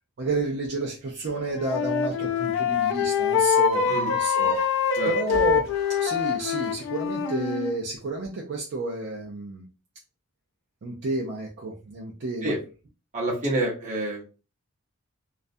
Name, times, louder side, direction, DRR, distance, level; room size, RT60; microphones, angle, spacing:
voice 1, 0.2-4.6 5.1-5.7 6.0-9.6 10.8-12.6, right 2 dB, 50° right, -2 dB, 0.4 m, -31 dB
Wind instrument woodwind instrument, 1.3-7.7, left 7 dB, 60° left, 0.3 m, -25 dB
sound 1, 3.5-6.7, equal, 85° right, 0.8 m, -34 dB
voice 2, 13.1-14.2, right 1 dB, 35° right, -2 dB, 0.9 m, -27 dB
2.4 x 2.1 x 2.5 m, 0.33 s
head